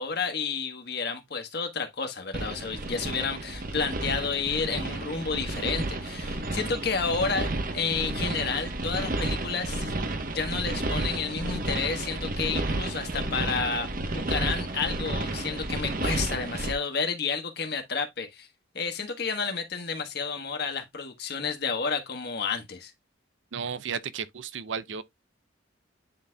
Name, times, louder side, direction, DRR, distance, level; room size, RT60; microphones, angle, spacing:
voice 1, 0.0-9.9 10.3-18.5 18.7-22.9, left 5 dB, 55° left, 1.3 m, -31 dB
sound 1, 2.3-16.7, right 2 dB, 45° right, 1.0 m, -31 dB
voice 2, 23.5-25.0, right 6 dB, 70° right, 0.5 m, -33 dB
10.0 x 4.1 x 2.3 m
head